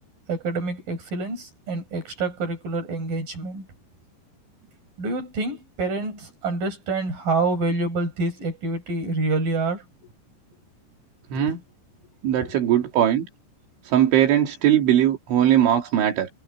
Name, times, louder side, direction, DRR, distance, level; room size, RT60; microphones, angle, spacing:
voice 1, 0.3-3.7 5.0-9.8 11.4-11.5 12.4-12.5, right 3 dB, 45° right, 9.2 m, -27 dB
voice 2, 11.3-11.6 12.2-13.3 13.9-16.3, right 11 dB, 80° right, 5.0 m, -20 dB
omnidirectional pair, 5.3 m